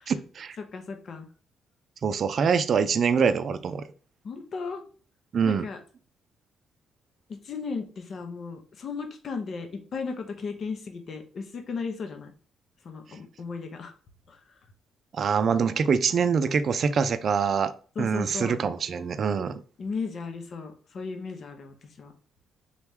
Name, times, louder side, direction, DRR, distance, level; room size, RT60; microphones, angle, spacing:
voice 1, 0.1-0.6 2.0-3.9 5.3-5.7 15.1-17.7 18.0-19.6, right 6 dB, 55° right, 0.4 m, -24 dB
voice 2, 0.6-1.3 4.2-4.8 5.4-5.8 7.3-12.3 12.8-13.9 14.3-14.6 17.9-18.6 19.8-22.1, left 4 dB, 55° left, 0.8 m, -36 dB
4.0 x 3.0 x 3.6 m
cardioid pair, 90°, 0 cm